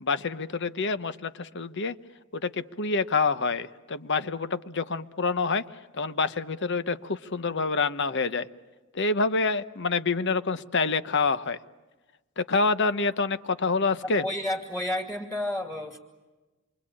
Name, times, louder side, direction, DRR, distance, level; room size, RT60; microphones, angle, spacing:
voice 1, 0.0-1.9 2.3-5.7 5.9-8.5 8.9-11.6 12.4-14.2, left 4 dB, 55° left, 13 dB, 1.0 m, -27 dB
voice 2, 14.2-16.0, left 1 dB, 5° left, -2 dB, 2.4 m, -31 dB
28.0 x 24.0 x 8.7 m, 1.2 s
head